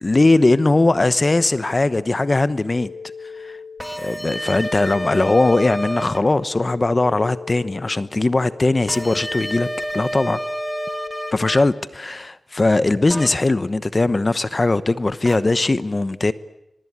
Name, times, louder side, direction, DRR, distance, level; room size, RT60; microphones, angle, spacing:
voice 1, 0.0-2.9 3.4-3.5 4.0-9.7 9.9-10.4 11.3-16.3, left 2 dB, 35° left, 14 dB, 1.0 m, -19 dB
sound 1, 2.8-11.7, left 5 dB, 65° left, 0.9 m, -39 dB
sound 2, 3.8-6.2 8.9-11.6 13.1-13.3 15.2-15.4, equal, 5° left, 2.7 m, -29 dB
24.0 x 23.5 x 9.6 m, 0.84 s
wide cardioid pair, 70°, 0 cm